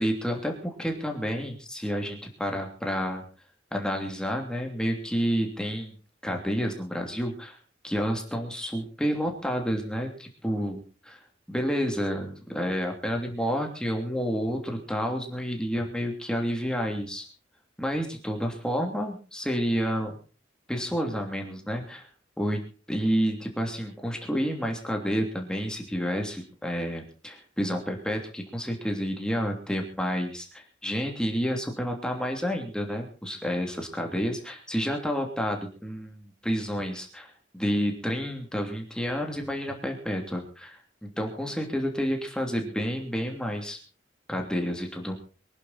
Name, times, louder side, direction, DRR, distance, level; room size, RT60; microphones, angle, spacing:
voice 1, 0.0-3.2 3.7-5.9 6.2-7.6 7.8-11.2 11.5-17.3 17.8-20.2 20.7-22.1 22.4-22.6 22.9-43.8 44.3-45.2, equal, 5° left, 2 dB, 2.9 m, -30 dB
24.0 x 11.0 x 4.3 m, 0.37 s
head